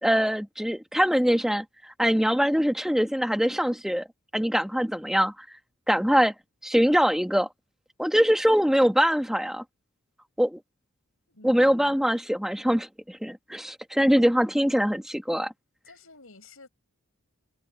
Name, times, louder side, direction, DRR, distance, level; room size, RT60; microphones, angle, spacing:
voice 1, 0.0-4.1 4.3-5.3 5.9-6.3 6.6-7.5 8.0-9.6 10.4-10.6 11.4-15.5, equal, ahead, 1.6 m, -23 dB
voice 2, 11.3-12.0 15.9-16.7, left 2 dB, 80° left, 5.7 m, -51 dB
head